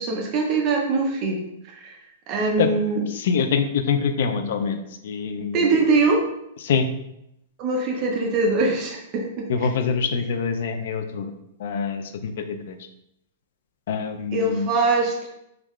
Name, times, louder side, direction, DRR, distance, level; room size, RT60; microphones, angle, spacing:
voice 1, 0.0-2.0 2.3-3.0 5.5-6.2 7.6-9.5 14.3-15.3, right 3 dB, 25° right, 1 dB, 0.4 m, -22 dB
voice 2, 3.1-4.8 5.0-5.6 6.6-6.9 9.5-11.3 11.6-12.8 13.9-14.7, left 6 dB, 60° left, 7 dB, 0.3 m, -25 dB
3.5 x 2.3 x 3.0 m, 0.81 s
supercardioid pair, 170°, 0 cm